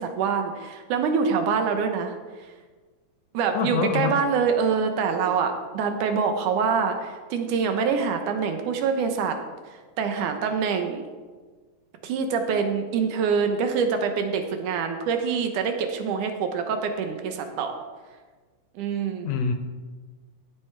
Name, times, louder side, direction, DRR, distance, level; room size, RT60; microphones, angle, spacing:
voice 1, 0.0-2.2 3.3-9.4 9.7-11.0 12.0-17.7 18.8-19.3, right 6 dB, 90° right, 6 dB, 2.5 m, -25 dB
voice 2, 3.5-4.2 19.2-19.5, left 6 dB, 75° left, 7 dB, 1.7 m, -25 dB
15.5 x 6.5 x 4.6 m, 1.4 s
omnidirectional pair, 3.5 m